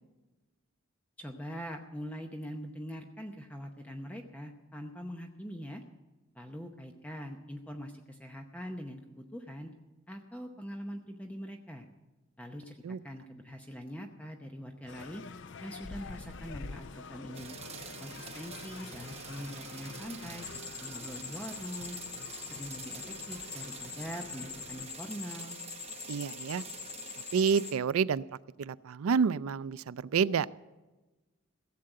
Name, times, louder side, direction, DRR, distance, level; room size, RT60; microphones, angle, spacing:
voice 1, 1.2-5.8 6.3-9.7 10.1-11.9 12.4-15.2 15.6-17.5 18.0-22.0 22.5-25.6, equal, 5° left, 3 dB, 0.8 m, -43 dB
sound 1, 14.9-24.9, left 4 dB, 55° left, 0.5 m, -47 dB
sound 2, 17.3-27.7, right 6 dB, 30° right, 1.0 m, -47 dB
sound 3, 20.4-27.8, left 8 dB, 80° left, 1.0 m, -44 dB
voice 2, 26.1-26.6 27.3-28.2 28.6-30.5, right 6 dB, 85° right, 17 dB, 0.4 m, -28 dB
16.5 x 7.6 x 7.8 m, 1.1 s
head